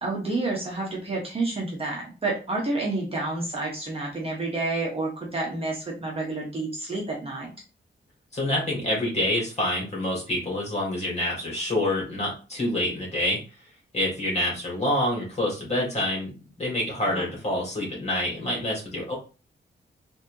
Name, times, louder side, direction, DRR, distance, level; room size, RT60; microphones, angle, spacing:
voice 1, 0.0-7.5 17.0-17.3, right 2 dB, 30° right, -3 dB, 1.1 m, -29 dB
voice 2, 8.3-13.4 13.9-16.3 16.6-19.1, left 1 dB, 35° left, -3 dB, 2.1 m, -27 dB
4.1 x 2.8 x 2.7 m, 0.32 s
wide cardioid pair, 165°, 19 cm